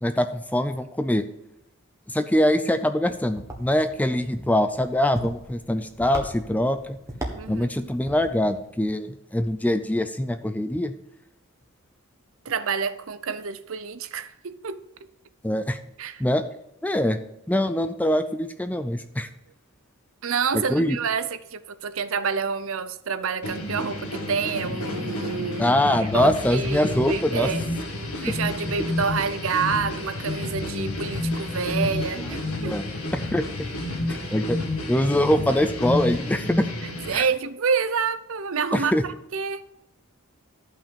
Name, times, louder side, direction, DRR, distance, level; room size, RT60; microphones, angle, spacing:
voice 1, 0.0-1.2 2.1-7.0 7.5-10.9 15.4-15.8 16.2-16.4 16.8-17.2 17.5-19.3 20.7-21.0 25.6-27.5 28.2-28.3 32.6-33.4 34.1-34.6 34.9-36.6 37.1-37.3 38.7-39.0, left 1 dB, 5° left, 0.4 m, -23 dB
sound 1, 3.1-8.7, right 1 dB, 15° right, 1.3 m, -38 dB
voice 2, 7.3-7.9 12.4-14.8 16.0-16.2 20.2-27.6 28.2-32.8 36.8-38.9 39.3-39.6, right 5 dB, 65° right, 0.6 m, -28 dB
sound 2, 23.4-37.1, left 1 dB, 85° left, 1.8 m, -30 dB
12.5 x 5.8 x 5.2 m
head